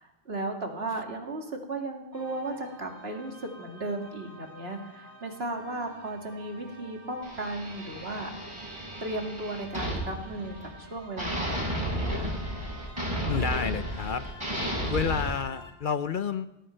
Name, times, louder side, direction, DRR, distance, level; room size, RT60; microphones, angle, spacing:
voice 1, 0.0-8.3 9.0-12.4, right 2 dB, 65° right, 2 dB, 2.5 m, -35 dB
sound 1, 2.1-15.7, equal, 15° left, 2.2 m, -50 dB
sound 2, 7.2-10.8 11.2-15.2, equal, 25° right, 5.9 m, -33 dB
voice 2, 13.3-14.3 14.9-16.5, left 6 dB, 55° left, 12 dB, 0.8 m, -30 dB
19.0 x 16.0 x 4.5 m, 0.94 s
omnidirectional pair, 1.1 m